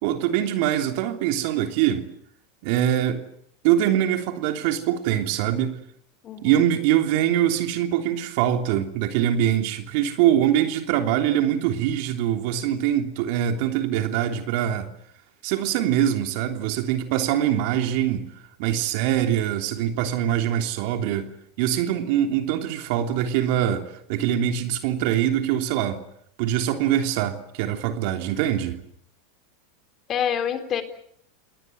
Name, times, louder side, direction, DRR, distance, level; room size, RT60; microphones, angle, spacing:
voice 1, 0.0-2.1 2.6-3.2 3.6-5.8 6.4-14.9 15.4-18.3 18.6-21.3 21.6-26.0 26.4-28.8, right 11 dB, 60° right, 3.2 m, -23 dB
voice 2, 6.2-6.6 30.1-30.8, left 9 dB, 35° left, 3.8 m, -26 dB
29.0 x 19.5 x 8.0 m
hypercardioid pair, 95°, 0 cm